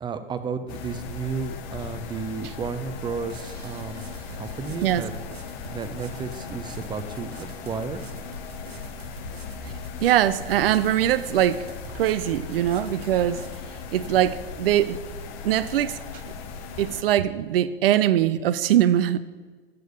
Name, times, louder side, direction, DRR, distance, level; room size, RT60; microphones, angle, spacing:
voice 1, 0.0-4.0 4.3-5.1 5.7-8.0, right 5 dB, 15° right, 0.6 m, -32 dB
sound 1, 0.7-17.0, left 5 dB, 50° left, 1.0 m, -38 dB
sound 2, 3.0-13.7, right 3 dB, 90° right, 0.9 m, -46 dB
voice 2, 10.0-11.6 11.9-13.4 13.9-15.0 15.4-16.0 16.8-19.2, right 12 dB, 70° right, 0.5 m, -22 dB
7.8 x 6.8 x 5.3 m
figure-of-eight pair, 90°, 30 cm